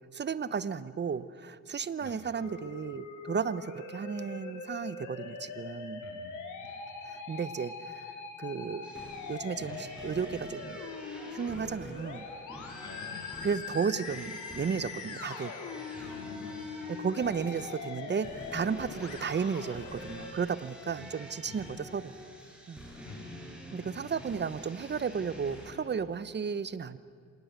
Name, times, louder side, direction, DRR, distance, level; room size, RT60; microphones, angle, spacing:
voice 1, 0.1-6.1 7.1-8.9 9.3-10.8 11.3-12.3 13.4-15.5 16.9-22.1 22.7-22.8 23.7-27.0, right 6 dB, 35° right, 16 dB, 1.0 m, -34 dB
voice 2, 2.0-2.3 6.0-6.9 12.8-13.2 15.9-16.8 20.9-21.1 21.4-21.7 22.9-23.5, left 4 dB, 55° left, 4 dB, 4.2 m, -49 dB
Musical instrument, 2.3-20.3, left 4 dB, 80° left, 4.0 m, -42 dB
sound 1, 8.8-25.7, equal, 5° right, 7.7 m, -47 dB
26.5 x 19.0 x 8.2 m, 2.3 s
cardioid pair, 90°, 30 cm